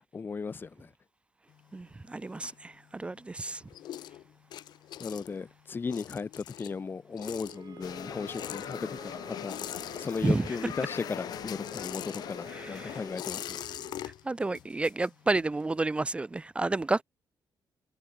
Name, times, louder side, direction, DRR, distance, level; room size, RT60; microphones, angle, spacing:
voice 1, 0.1-0.9 5.0-9.6 10.0-13.6, left 5 dB, 30° left, 4.3 m, -36 dB
sound 1, 1.5-3.1 3.4-10.7 10.9-15.6, left 12 dB, 90° left, 2.7 m, -43 dB
voice 2, 1.7-3.6 10.2-10.4 12.5-13.0 14.3-17.0, right 3 dB, 15° right, 1.2 m, -30 dB
sound 2, 7.2-14.1, right 9 dB, 60° right, 7.0 m, -50 dB
sound 3, 7.8-13.2, left 11 dB, 70° left, 1.0 m, -41 dB
cardioid pair, 150°, 7 cm